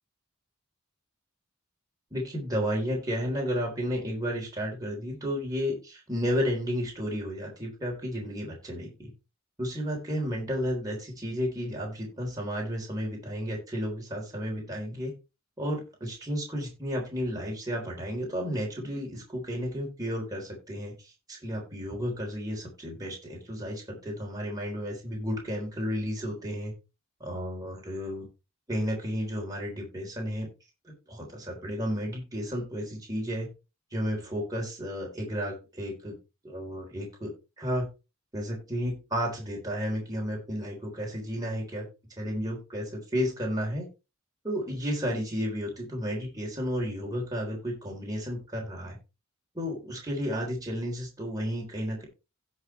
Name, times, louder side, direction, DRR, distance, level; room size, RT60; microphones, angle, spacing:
voice 1, 2.1-9.1 9.6-15.1 15.6-20.9 21.3-26.7 27.2-28.3 28.7-30.5 30.8-33.5 33.9-36.2 36.4-37.3 37.6-37.9 38.3-41.9 42.2-43.9 44.4-49.0 49.5-52.0, equal, 15° right, -2 dB, 3.8 m, -32 dB
16.0 x 5.5 x 3.3 m, 0.29 s
head